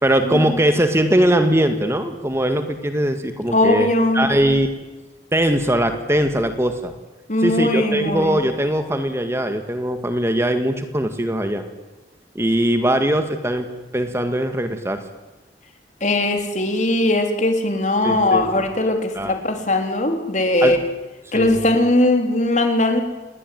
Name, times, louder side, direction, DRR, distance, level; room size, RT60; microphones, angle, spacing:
voice 1, 0.0-4.8 5.3-6.9 7.4-11.6 12.4-13.7 13.9-15.0 18.0-18.6 19.1-19.3 20.6-20.8 21.3-21.6, right 1 dB, 15° right, 7 dB, 2.0 m, -20 dB
voice 2, 3.5-4.3 7.3-8.4 16.0-20.8 21.3-23.0, left 2 dB, 45° left, 5 dB, 3.7 m, -19 dB
29.0 x 21.5 x 9.4 m, 1.2 s
head